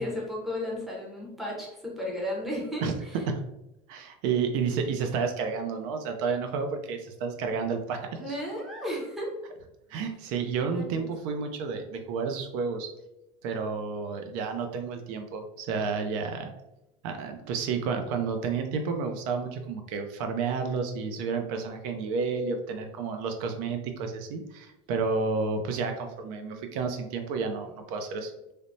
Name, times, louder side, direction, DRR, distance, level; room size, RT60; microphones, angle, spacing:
voice 1, 0.0-3.2 8.2-9.3 10.7-11.1, left 1 dB, ahead, -4 dB, 0.6 m, -34 dB
voice 2, 3.9-8.3 9.9-12.9 13.4-16.5 17.0-28.3, right 5 dB, 75° right, 5 dB, 0.4 m, -31 dB
3.2 x 2.0 x 2.6 m, 0.89 s
cardioid pair, 170°, 18 cm